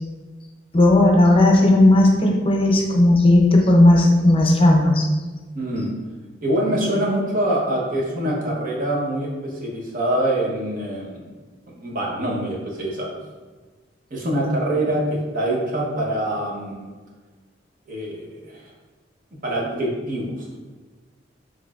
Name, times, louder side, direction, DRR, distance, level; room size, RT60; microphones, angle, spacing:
voice 1, 0.7-5.1, left 1 dB, 30° left, 0 dB, 0.6 m, -15 dB
voice 2, 5.5-5.9 6.4-11.2 11.8-13.1 14.1-16.9 17.9-18.7 19.4-20.4, right 1 dB, 50° right, -2 dB, 0.9 m, -24 dB
6.0 x 3.1 x 2.4 m, 1.3 s
head